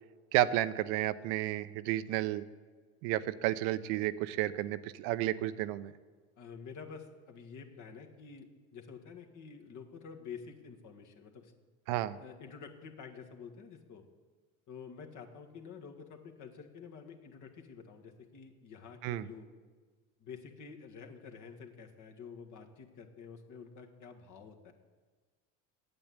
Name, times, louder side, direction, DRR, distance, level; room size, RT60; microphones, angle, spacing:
voice 1, 0.3-2.4 3.0-5.9 11.9-12.2 19.0-19.3, right 14 dB, 75° right, 14 dB, 0.7 m, -32 dB
voice 2, 6.4-8.5 8.7-11.5 12.2-14.1 14.7-19.5 20.2-24.7, left 6 dB, 50° left, 3 dB, 1.8 m, -49 dB
8.8 x 7.8 x 8.5 m, 1.4 s
hypercardioid pair, 75°, 37 cm